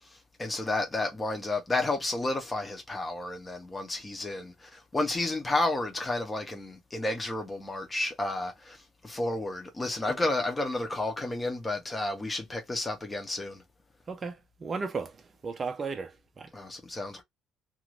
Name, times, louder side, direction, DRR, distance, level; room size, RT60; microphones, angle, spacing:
voice 1, 0.1-13.6 16.5-17.2, left 2 dB, 10° left, 0.8 m, -31 dB
voice 2, 14.1-16.5, right 4 dB, 20° right, 0.6 m, -35 dB
2.5 x 2.5 x 3.0 m
cardioid pair, 175°, 0 cm